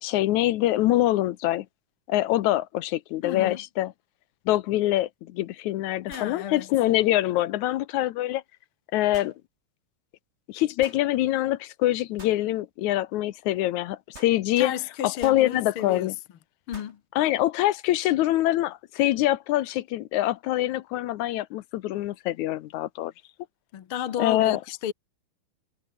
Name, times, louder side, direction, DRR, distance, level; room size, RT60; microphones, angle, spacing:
voice 1, 0.0-1.7 2.1-3.9 4.5-8.4 8.9-9.3 10.5-14.7 15.0-16.1 17.2-23.1 24.2-24.6, left 15 dB, 75° left, 2.1 m, -24 dB
voice 2, 3.2-3.6 6.1-6.7 14.6-16.1 16.7-17.0 23.7-24.9, left 10 dB, 55° left, 1.7 m, -32 dB
sound 1, 4.9-5.0 6.1-6.4 9.1-9.4 10.8-11.0 12.2-12.4 14.1-14.4 15.2-15.5 16.7-17.0, right 2 dB, 20° right, 5.8 m, -46 dB
omnidirectional pair, 3.6 m